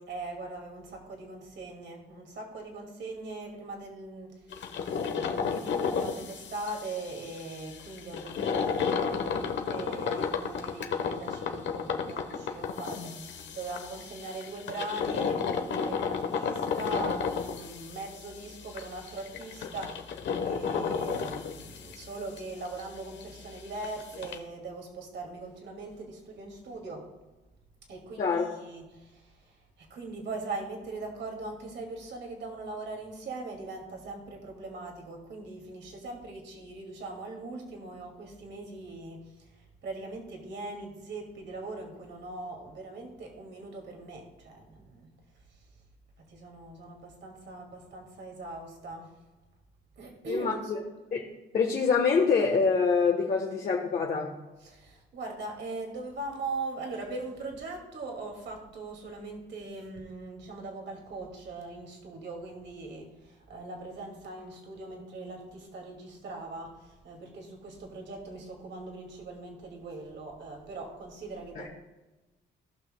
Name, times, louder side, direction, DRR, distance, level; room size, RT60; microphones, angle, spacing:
voice 1, 0.1-4.5 4.8-27.1 27.9-45.1 45.5-45.6 46.3-49.2 50.0-50.7 54.6-71.7, right 2 dB, 65° right, 1 dB, 2.2 m, -41 dB
sound 1, 4.5-22.4 22.6-22.8 23.2-23.3 23.6-23.7 23.8-24.4, left 6 dB, 65° left, 1.0 m, -33 dB
voice 2, 50.3-50.8 51.1-51.2 51.5-54.3 71.5-71.7, left 5 dB, 45° left, -1 dB, 1.2 m, -25 dB
17.5 x 5.9 x 2.2 m, 1.1 s
cardioid pair, 90°, 20 cm